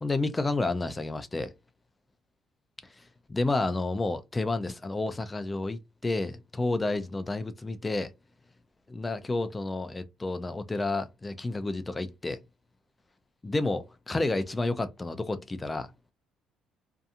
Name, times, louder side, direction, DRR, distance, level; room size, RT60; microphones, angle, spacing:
voice 1, 0.0-1.5 3.0-8.1 8.9-12.4 13.4-15.9, left 2 dB, 20° left, 0.4 m, -30 dB
2.7 x 2.3 x 2.4 m
cardioid pair, 100°, 0 cm